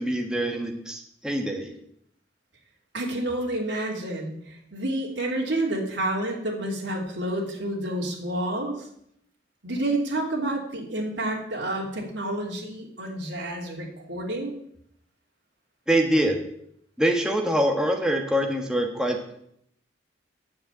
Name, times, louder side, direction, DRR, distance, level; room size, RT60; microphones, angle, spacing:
voice 1, 0.0-1.7 15.9-16.4 17.0-19.2, right 1 dB, 5° right, 2 dB, 1.3 m, -24 dB
voice 2, 2.9-8.9 9.6-14.5, right 1 dB, 80° right, -2 dB, 2.9 m, -29 dB
9.5 x 6.7 x 8.8 m, 0.72 s
head